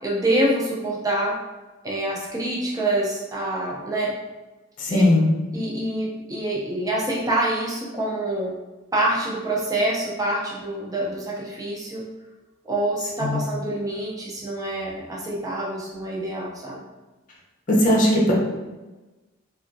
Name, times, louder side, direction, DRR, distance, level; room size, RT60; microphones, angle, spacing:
voice 1, 0.0-1.4 1.8-4.1 4.9-5.0 5.5-8.5 8.9-12.1 12.6-16.8, right 1 dB, 20° right, -4 dB, 0.6 m, -26 dB
voice 2, 4.8-5.3 13.2-13.4 17.7-18.3, left 1 dB, 40° left, -2 dB, 0.7 m, -18 dB
3.5 x 2.5 x 2.6 m, 1.2 s
head